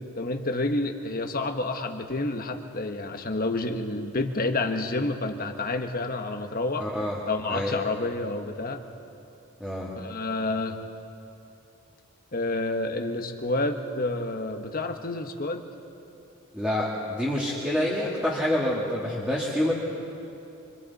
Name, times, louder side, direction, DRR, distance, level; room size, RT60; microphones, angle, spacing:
voice 1, 0.0-6.9 7.3-8.8 10.0-10.8 12.3-15.6, left 2 dB, 40° left, 5 dB, 1.3 m, -29 dB
voice 2, 6.8-7.2 7.5-7.8 9.6-9.9 16.5-19.7, left 1 dB, 5° right, -6 dB, 2.1 m, -27 dB
27.0 x 26.0 x 4.2 m, 2.8 s
head